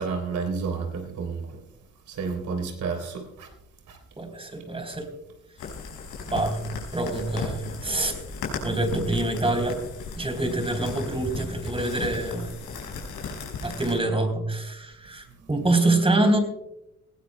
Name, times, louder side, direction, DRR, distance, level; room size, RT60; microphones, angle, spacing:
voice 1, 0.0-1.6 2.1-3.5 3.9-4.0 15.4-15.5, right 5 dB, 70° right, 4 dB, 3.5 m, -31 dB
voice 2, 4.2-5.1 6.3-6.6 6.9-8.2 8.6-9.8 10.2-12.5 13.6-16.4, right 2 dB, 20° right, 5 dB, 3.6 m, -25 dB
sound 1, 5.6-14.0, left 4 dB, 85° left, 5.3 m, -36 dB
19.5 x 17.0 x 2.2 m, 0.87 s
cardioid pair, 90°, 30 cm